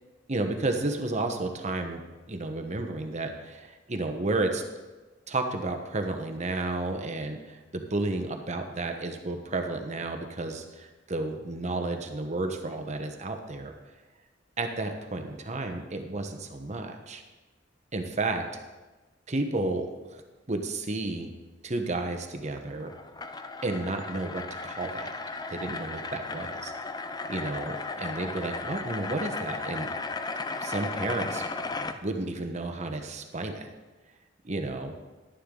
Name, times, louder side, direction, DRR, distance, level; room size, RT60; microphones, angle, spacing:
voice 1, 0.3-2.0 2.3-4.6 5.3-13.7 14.6-17.2 17.9-18.5 19.3-20.2 20.5-21.3 21.6-22.9 23.6-25.1 25.5-26.7 27.3-30.0 30.6-31.4 32.0-33.7 34.4-34.9, right 2 dB, 40° right, 5 dB, 1.1 m, -32 dB
sound 1, 22.5-32.0, left 3 dB, 20° left, 0.5 m, -35 dB
11.5 x 10.0 x 3.9 m, 1.2 s
head